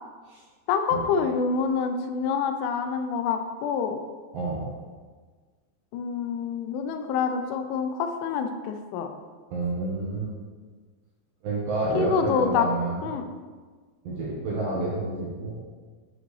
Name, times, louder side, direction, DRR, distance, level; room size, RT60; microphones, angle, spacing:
voice 1, 0.7-4.0 5.9-9.1 11.9-12.7 13.0-13.3, left 6 dB, 85° left, 7 dB, 3.1 m, -27 dB
voice 2, 4.3-4.7 9.5-10.3 11.4-13.0 14.0-15.6, right 2 dB, 70° right, -6 dB, 2.3 m, -29 dB
10.0 x 5.0 x 3.2 m, 1.5 s
omnidirectional pair, 5.4 m